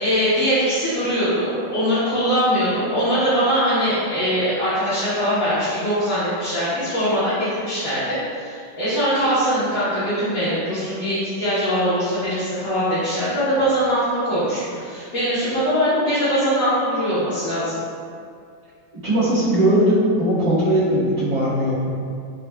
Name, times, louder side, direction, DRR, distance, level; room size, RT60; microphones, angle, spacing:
voice 1, 0.0-17.7, equal, 55° left, -14 dB, 1.3 m, -22 dB
voice 2, 19.0-21.9, right 1 dB, 40° right, -13 dB, 1.4 m, -19 dB
5.2 x 2.4 x 2.2 m, 2.3 s
omnidirectional pair, 2.0 m